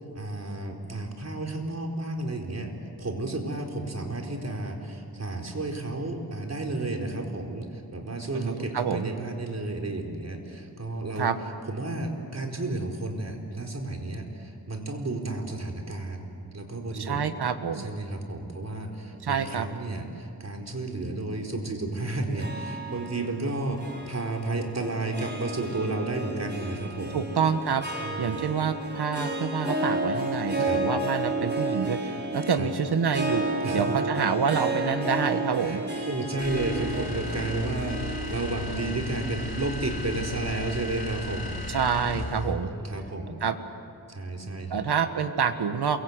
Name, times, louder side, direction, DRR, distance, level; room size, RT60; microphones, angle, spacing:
voice 1, 0.1-2.7 3.0-11.3 11.7-17.2 17.7-27.3 28.0-28.4 30.6-30.8 32.5-32.7 33.6-33.9 35.6-41.6 42.3-43.4 44.1-44.8, right 2 dB, 45° right, 2 dB, 4.4 m, -32 dB
voice 2, 8.3-9.1 11.2-11.4 17.0-17.9 19.2-19.7 27.1-33.4 33.7-35.8 41.7-42.7 43.4-43.6 44.7-46.0, right 6 dB, 85° right, 9 dB, 1.5 m, -27 dB
Harp, 22.3-40.8, right 1 dB, 25° right, 5.3 m, -32 dB
sound 1, 36.4-42.5, left 1 dB, 70° left, 6.2 m, -35 dB
28.0 x 23.0 x 8.2 m, 2.8 s
wide cardioid pair, 80°, 38 cm